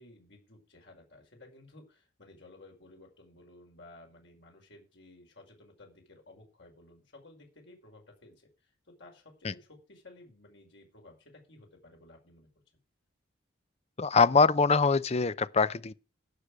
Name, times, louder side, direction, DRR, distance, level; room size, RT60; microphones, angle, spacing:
voice 1, 0.0-12.5, left 2 dB, 70° left, 5.3 m, -55 dB
voice 2, 14.0-15.9, left 4 dB, 35° left, 0.6 m, -23 dB
16.0 x 6.8 x 4.9 m
head